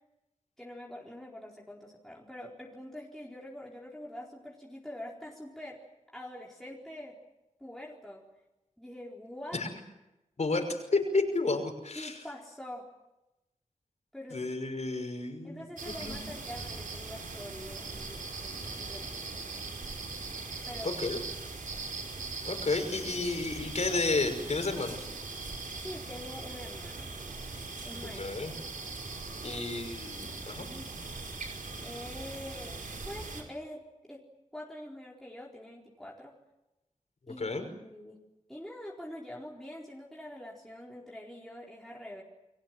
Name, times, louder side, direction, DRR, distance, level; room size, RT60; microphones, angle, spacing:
voice 1, 0.6-5.8 6.1-7.2 7.6-8.2 8.8-9.6 11.9-12.8 14.1-14.4 15.4-19.6 20.7-21.0 25.8-27.1 27.8-28.3 29.4-29.8 30.6-30.9 31.8-33.8 34.1-34.2 34.5-36.3 37.3-38.2 38.5-42.2, left 1 dB, 5° left, -3 dB, 4.4 m, -45 dB
voice 2, 10.4-12.2 14.3-16.2 20.8-21.2 22.5-25.1 28.1-28.5 29.4-30.6 37.4-37.7, left 3 dB, 55° left, 5 dB, 5.8 m, -31 dB
sound 1, 15.8-33.4, right 3 dB, 80° right, 5.4 m, -40 dB
29.5 x 22.5 x 7.7 m, 0.95 s
wide cardioid pair, 90°, 14 cm